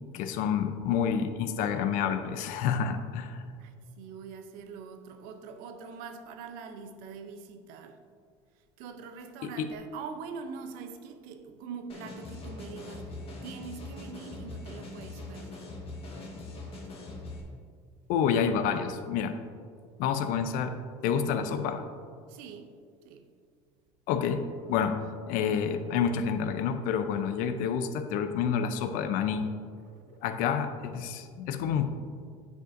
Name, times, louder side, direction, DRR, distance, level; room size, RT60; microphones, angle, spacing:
voice 1, 0.1-3.4 9.4-9.7 18.1-19.3 20.0-20.8 21.0-21.8 24.1-24.4 24.7-25.0 25.3-29.5 30.2-31.9, left 7 dB, 65° left, 0.6 m, -28 dB
voice 2, 3.6-8.0 8.8-15.8 22.3-22.8 23.0-23.3, right 6 dB, 70° right, 0.6 m, -44 dB
sound 1, 11.9-17.4, left 2 dB, 40° left, 1.5 m, -42 dB
9.3 x 5.0 x 2.6 m
supercardioid pair, 90°, 15 cm